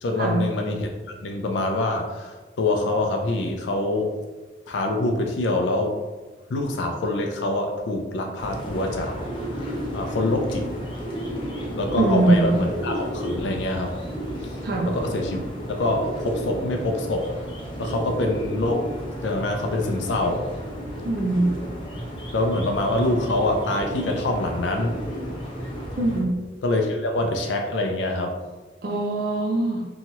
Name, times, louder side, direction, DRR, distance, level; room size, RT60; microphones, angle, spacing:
voice 1, 0.0-0.9 1.2-4.1 4.7-5.9 6.5-9.1 9.5-10.7 11.7-13.9 14.9-15.4 15.7-17.3 17.8-18.9 19.2-20.5 22.3-25.0 26.6-28.3, left 2 dB, 80° left, 3 dB, 0.4 m, -25 dB
sound 1, 8.4-26.2, equal, 25° left, 0.5 m, -32 dB
voice 2, 12.0-12.5 14.6-14.9 21.0-21.5 26.0-26.4 28.8-29.8, right 2 dB, 55° right, -1 dB, 0.4 m, -22 dB
2.9 x 2.3 x 2.9 m, 1.3 s
head